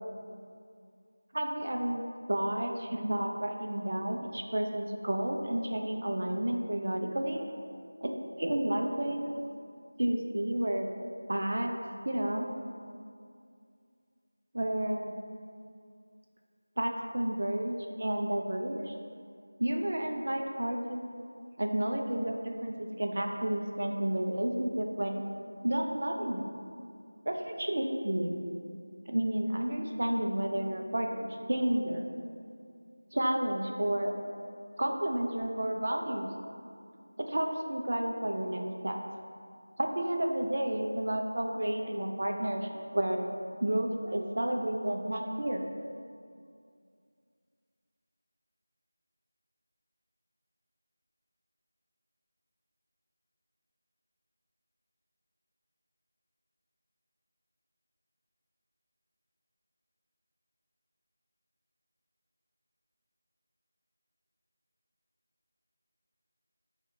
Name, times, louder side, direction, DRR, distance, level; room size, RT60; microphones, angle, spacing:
voice 1, 1.3-7.5 8.0-8.1 8.4-9.3 10.0-10.9 11.3-11.7 12.0-12.5 14.5-15.1 16.8-18.9 19.6-21.0 21.6-25.2 25.6-26.6 27.3-28.4 29.1-32.1 33.1-34.2 34.8-36.3 37.2-38.9 39.8-43.2 43.6-45.6, right 1 dB, 55° right, 2 dB, 0.3 m, -31 dB
4.7 x 2.1 x 2.2 m, 2.3 s
figure-of-eight pair, 170°, 0 cm